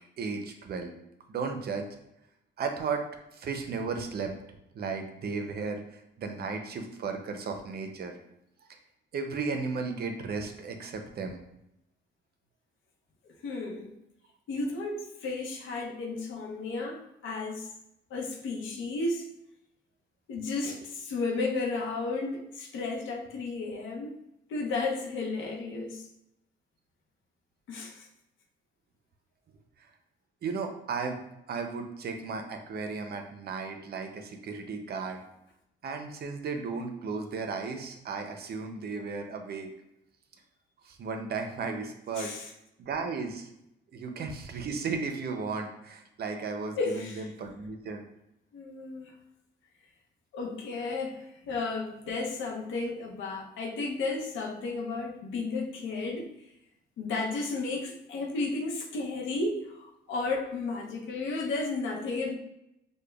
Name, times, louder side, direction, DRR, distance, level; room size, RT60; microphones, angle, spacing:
voice 1, 0.2-0.9 1.3-1.9 2.6-3.0 3.3-4.3 4.7-8.2 9.1-11.4 30.4-35.2 35.8-39.7 40.8-42.3 42.8-43.5 43.9-48.0, right 4 dB, 55° right, 5 dB, 0.5 m, -35 dB
voice 2, 13.2-13.9 14.5-17.7 18.1-19.3 20.3-24.2 24.5-26.1 27.7-28.1 42.2-42.5 46.8-47.3 48.5-49.1 50.3-56.3 57.0-62.3, left 3 dB, 75° left, 1 dB, 0.7 m, -33 dB
4.9 x 2.2 x 2.3 m, 0.84 s
cardioid pair, 90°, 20 cm